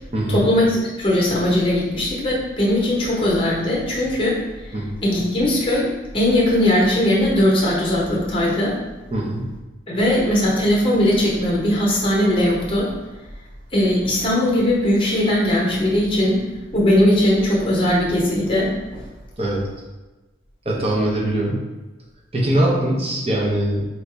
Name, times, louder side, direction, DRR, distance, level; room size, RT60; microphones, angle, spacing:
voice 1, 0.3-4.4 5.0-8.8 9.9-12.9 13.7-16.4 16.7-19.0, left 1 dB, 25° left, -4 dB, 1.0 m, -19 dB
voice 2, 9.1-9.4 19.4-19.6 20.6-21.6 22.3-23.9, right 1 dB, 30° right, -3 dB, 0.9 m, -21 dB
4.5 x 2.7 x 3.4 m, 1.1 s
head